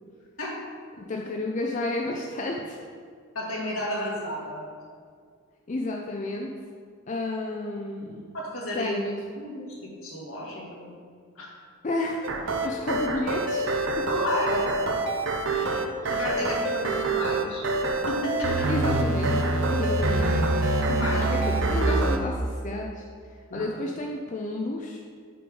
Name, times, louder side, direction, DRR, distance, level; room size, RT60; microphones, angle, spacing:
voice 1, 1.0-2.8 4.0-4.3 5.7-6.5 7.1-8.3 8.7-9.2 11.8-13.7 14.0-14.1 16.3-16.5 18.7-20.4 21.1-25.0, left 2 dB, 35° left, 0 dB, 0.4 m, -31 dB
voice 2, 3.4-4.6 8.3-9.0 9.4-10.9 11.4-11.5 14.1-14.7 15.5-17.7 18.1-18.7 20.9-21.3 23.5-23.7, left 1 dB, 70° left, -4 dB, 1.8 m, -32 dB
sound 1, 12.2-22.2, right 2 dB, 65° right, 0.6 m, -25 dB
5.8 x 4.8 x 5.3 m, 2.1 s
head